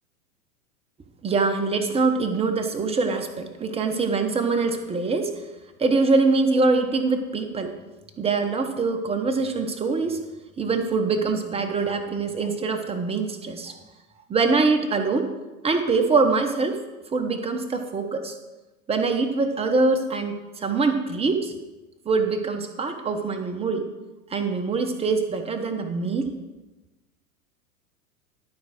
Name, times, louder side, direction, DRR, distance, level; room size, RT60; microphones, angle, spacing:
voice 1, 1.2-5.4 5.8-7.8 8.2-10.2 10.6-13.8 14.3-15.3 15.6-16.8 17.1-18.4 18.9-21.5 22.0-23.9 24.3-26.3, right 4 dB, 15° right, 5 dB, 0.9 m, -24 dB
11.5 x 4.7 x 6.1 m, 1.1 s
figure-of-eight pair, 95°, 45 cm